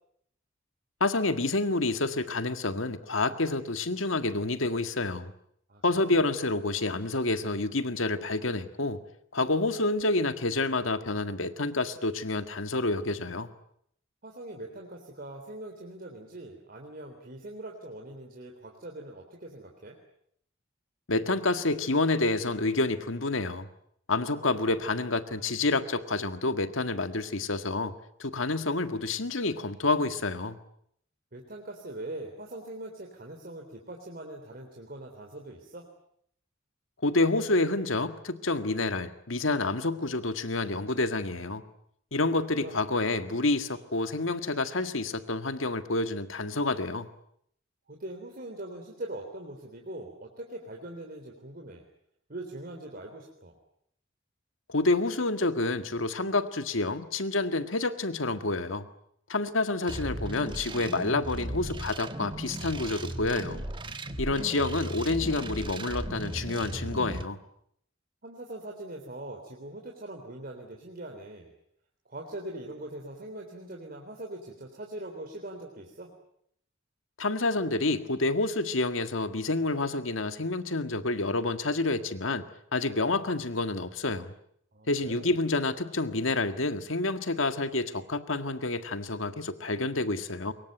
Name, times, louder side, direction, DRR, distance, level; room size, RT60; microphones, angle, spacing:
voice 1, 1.0-5.3 5.8-9.0 9.3-13.5 21.1-23.7 24.1-27.9 28.2-30.6 37.0-41.6 42.1-47.1 54.7-58.9 59.3-63.6 64.2-67.4 77.2-82.5 82.7-84.3 84.9-90.5, left 2 dB, 80° left, 10 dB, 1.7 m, -28 dB
voice 2, 5.7-6.2 14.2-20.0 24.1-24.6 31.3-35.9 42.2-42.8 47.9-51.8 52.3-53.5 64.1-64.2 64.5-64.8 68.2-71.5 72.1-76.1 84.7-85.3, right 1 dB, 50° right, 1 dB, 3.7 m, -42 dB
sound 1, 59.9-67.2, right 1 dB, 25° right, 1.5 m, -36 dB
24.5 x 22.5 x 9.2 m, 0.70 s
head